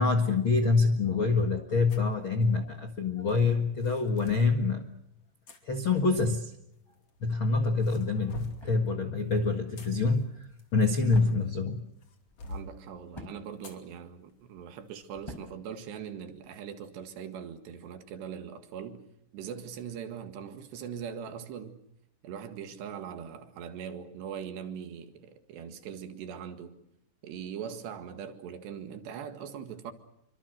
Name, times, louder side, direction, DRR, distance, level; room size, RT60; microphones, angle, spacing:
voice 1, 0.0-4.8 5.7-6.5 7.2-10.3 10.7-11.9, left 3 dB, 55° left, 1.4 m, -26 dB
sound 1, 1.9-2.1 3.3-4.5 5.5-5.6 6.7-7.4 7.8-8.7 9.5-11.6 12.0-12.7 13.6-13.8 14.3-14.4 15.0-15.2, left 1 dB, 40° left, 3.2 m, -45 dB
sound 2, 7.7-16.6, equal, 5° left, 4.5 m, -51 dB
voice 2, 12.5-19.0 19.3-21.8 22.2-26.8 27.2-29.9, right 8 dB, 75° right, 3.9 m, -41 dB
27.5 x 25.0 x 6.5 m
omnidirectional pair, 5.1 m